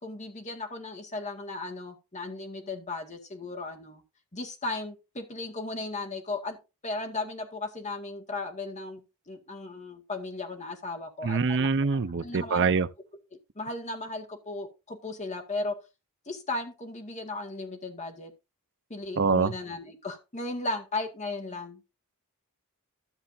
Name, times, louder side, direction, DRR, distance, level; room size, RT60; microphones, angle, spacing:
voice 1, 0.0-4.0 4.3-6.6 6.8-11.7 12.2-12.7 13.3-15.8 16.3-18.3 18.9-21.8, left 2 dB, 30° left, 2.0 m, -36 dB
voice 2, 11.2-12.9 19.2-19.5, right 4 dB, 55° right, 0.6 m, -24 dB
13.5 x 6.9 x 2.7 m
head